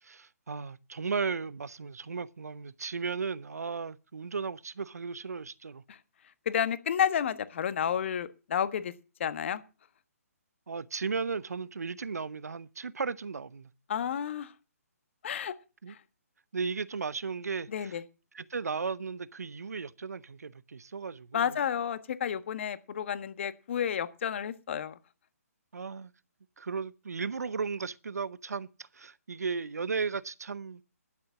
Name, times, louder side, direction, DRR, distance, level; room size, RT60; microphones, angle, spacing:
voice 1, 0.0-5.8 10.7-13.7 15.8-16.0 16.5-18.0 18.3-21.5 25.7-26.1 26.6-30.8, right 5 dB, 80° right, 0.7 m, -35 dB
voice 2, 6.4-8.9 9.2-9.6 13.9-14.5 15.2-15.5 15.9-16.0 17.7-18.0 21.3-25.0, left 8 dB, 50° left, 1.4 m, -31 dB
12.0 x 8.0 x 7.0 m
hypercardioid pair, 145°, 8 cm